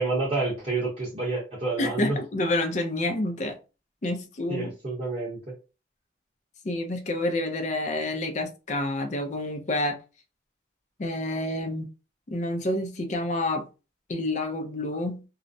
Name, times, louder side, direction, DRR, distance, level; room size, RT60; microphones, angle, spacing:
voice 1, 0.0-2.2 4.5-5.5, right 3 dB, 35° right, -8 dB, 0.8 m, -29 dB
voice 2, 1.8-3.6 4.0-4.7 6.6-10.0 11.0-11.9 12.3-13.7 14.1-15.2, left 1 dB, 40° left, 4 dB, 0.5 m, -28 dB
2.4 x 2.0 x 2.6 m, 0.31 s
head